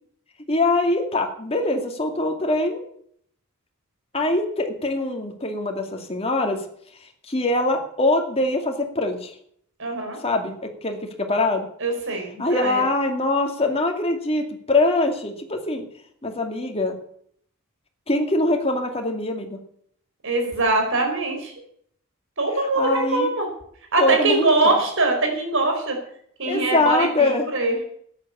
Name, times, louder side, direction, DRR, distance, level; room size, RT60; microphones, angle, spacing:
voice 1, 0.5-2.8 4.1-6.6 7.3-9.3 10.2-11.7 12.4-15.8 16.2-17.0 18.1-19.6 22.8-23.3 24.0-24.7 26.4-27.5, left 2 dB, 25° left, 3 dB, 2.3 m, -23 dB
voice 2, 9.8-10.2 11.8-12.8 20.2-21.5 22.4-23.5 23.9-26.0 26.4-27.8, right 2 dB, 60° right, 3 dB, 5.0 m, -22 dB
13.5 x 9.7 x 8.5 m, 0.65 s
head